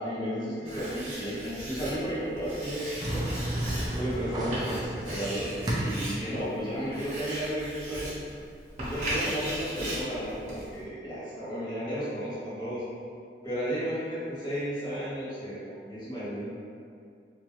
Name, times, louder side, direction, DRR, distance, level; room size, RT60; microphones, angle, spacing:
voice 1, 0.0-3.2 3.8-8.1 8.8-12.8 13.4-16.5, equal, 25° left, -12 dB, 1.3 m, -33 dB
Writing, 0.7-10.8, right 1 dB, 40° right, 1.1 m, -38 dB
sound 1, 3.0-6.2, right 1 dB, 20° right, 0.6 m, -32 dB
3.5 x 2.9 x 3.1 m, 2.3 s
head